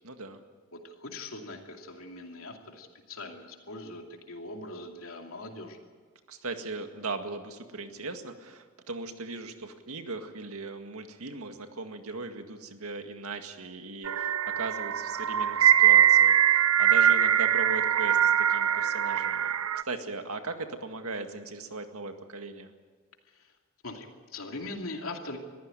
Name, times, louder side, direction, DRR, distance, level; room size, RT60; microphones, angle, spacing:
voice 1, 0.0-0.4 6.3-19.5 19.8-22.7, right 3 dB, 90° right, 6 dB, 1.9 m, -38 dB
voice 2, 0.7-5.8 23.3-23.5 23.8-25.4, left 2 dB, 75° left, 3 dB, 2.7 m, -41 dB
sound 1, 14.0-19.8, right 10 dB, 75° right, 0.6 m, -22 dB
22.5 x 15.0 x 9.0 m, 1.5 s
head